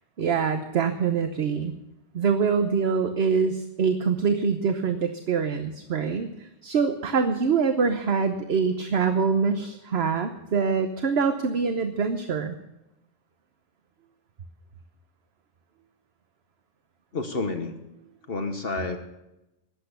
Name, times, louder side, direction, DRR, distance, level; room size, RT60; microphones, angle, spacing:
voice 1, 0.2-1.7 2.1-12.5, right 5 dB, 60° right, 7 dB, 1.2 m, -24 dB
voice 2, 17.1-17.7 18.3-19.0, left 3 dB, 55° left, 6 dB, 1.4 m, -29 dB
21.0 x 8.4 x 6.8 m, 0.93 s
omnidirectional pair, 1.2 m